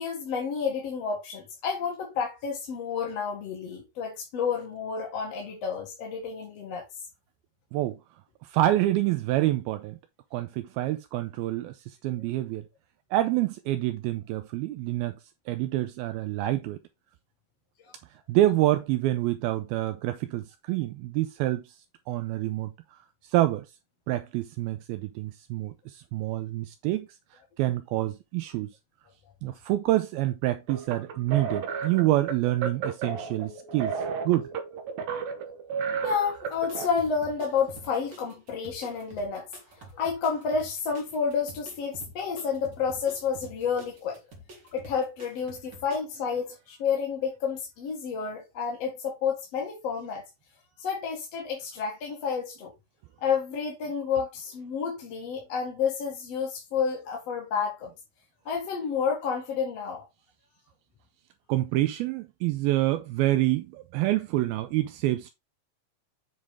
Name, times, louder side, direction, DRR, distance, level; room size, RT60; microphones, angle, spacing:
voice 1, 0.0-6.8 17.8-17.9 36.0-39.5 39.9-44.2 44.7-50.2 50.8-52.7 53.2-57.9 58.5-60.0, left 6 dB, 50° left, 2.3 m, -30 dB
voice 2, 8.4-10.0 10.3-12.7 13.1-15.2 15.5-16.8 18.3-21.6 22.1-23.0 23.3-23.7 24.1-27.1 27.6-28.7 29.4-34.5 61.5-65.3, right 15 dB, 80° right, 2.4 m, -27 dB
sound 1, 30.7-36.9, right 6 dB, 65° right, 1.8 m, -33 dB
sound 2, 36.5-46.0, right 1 dB, 35° right, 2.1 m, -49 dB
8.1 x 5.4 x 3.5 m
omnidirectional pair, 4.5 m